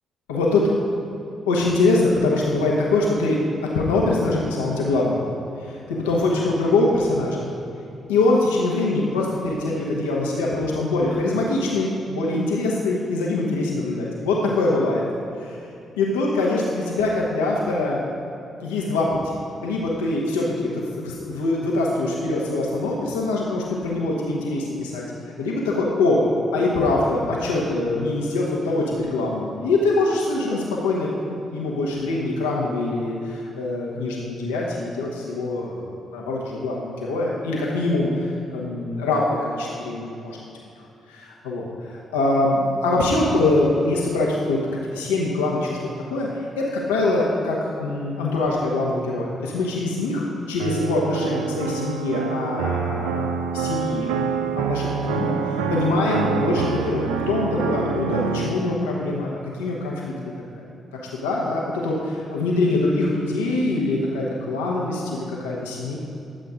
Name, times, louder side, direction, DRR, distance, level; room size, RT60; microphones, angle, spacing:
voice 1, 0.3-0.7 1.5-5.2 5.6-7.5 8.1-15.0 15.4-15.6 16.0-18.0 18.6-25.0 25.4-26.2 26.5-40.4 41.1-44.6 44.9-45.8 46.1-54.1 54.6-60.1 61.1-66.0, left 2 dB, 90° left, -4 dB, 1.3 m, -23 dB
sound 1, 50.6-58.6, right 6 dB, 85° right, 0.5 m, -26 dB
11.5 x 7.8 x 5.0 m, 2.7 s
hypercardioid pair, 45°, 0 cm